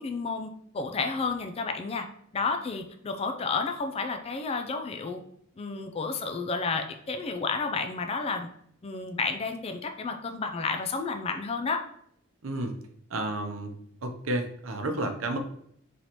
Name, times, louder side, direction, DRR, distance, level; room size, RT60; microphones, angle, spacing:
voice 1, 0.0-2.1 2.3-5.2 5.6-8.5 8.8-11.8, left 4 dB, 30° left, 6 dB, 0.3 m, -31 dB
voice 2, 12.4-12.8 13.1-13.7 14.0-15.4, right 2 dB, 85° right, 5 dB, 0.7 m, -31 dB
4.1 x 3.2 x 2.9 m, 0.66 s
head